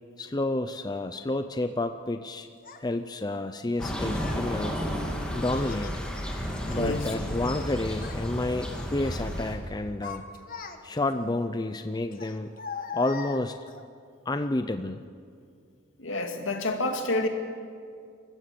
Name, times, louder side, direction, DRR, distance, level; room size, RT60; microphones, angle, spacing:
voice 1, 0.2-2.5 2.8-4.8 5.3-5.9 6.7-10.2 10.8-12.5 12.9-13.6 14.3-15.0, left 2 dB, 20° left, 9 dB, 0.5 m, -30 dB
Child speech kid speaking, 2.6-2.8 3.7-4.5 5.4-6.0 6.4-7.7 7.9-8.2 8.6-9.2 9.7-11.1 12.1-13.8, left 5 dB, 45° left, 1.4 m, -41 dB
sound 1, 3.8-9.6, equal, 5° left, 2.3 m, -32 dB
voice 2, 6.7-7.1 16.0-17.3, left 2 dB, 70° left, 4 dB, 2.3 m, -28 dB
28.0 x 15.5 x 6.9 m, 2.3 s
head